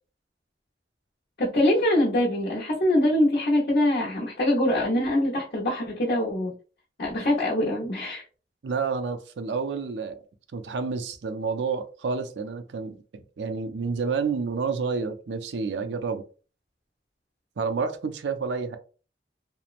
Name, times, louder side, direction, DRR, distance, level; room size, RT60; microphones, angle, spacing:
voice 1, 1.4-6.5 7.0-8.2, left 1 dB, 60° left, -8 dB, 0.8 m, -23 dB
voice 2, 8.6-10.2 10.5-16.2 17.6-18.8, right 5 dB, 80° right, 8 dB, 0.4 m, -29 dB
2.9 x 2.0 x 2.4 m, 0.37 s
head